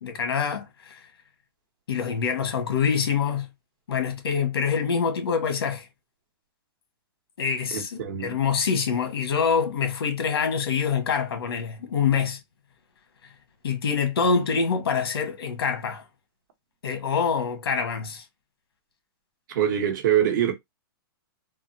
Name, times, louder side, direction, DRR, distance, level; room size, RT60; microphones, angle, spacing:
voice 1, 0.0-1.0 1.9-3.5 3.9-5.9 7.4-12.4 13.6-16.0 16.8-18.2, left 6 dB, 90° left, 1.2 m, -25 dB
voice 2, 7.7-8.3 19.5-20.5, right 10 dB, 55° right, 1.0 m, -24 dB
3.5 x 2.0 x 2.7 m
hypercardioid pair, 155°, 12 cm